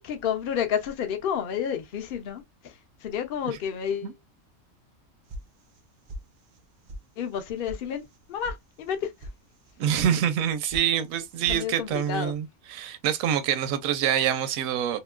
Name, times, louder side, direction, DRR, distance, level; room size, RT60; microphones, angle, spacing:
voice 1, 0.0-4.2 7.2-9.3 11.5-12.4, left 8 dB, 55° left, 0.7 m, -31 dB
sound 1, 5.3-5.8 6.1-6.6 6.9-7.0 7.3-7.8 8.1-8.6 8.9-9.3 9.7-10.1 10.4-10.9 11.1-11.6, equal, 65° right, 0.4 m, -39 dB
voice 2, 9.8-12.5 12.7-15.0, right 9 dB, 80° right, 1.0 m, -25 dB
2.9 x 2.6 x 2.3 m
omnidirectional pair, 1.4 m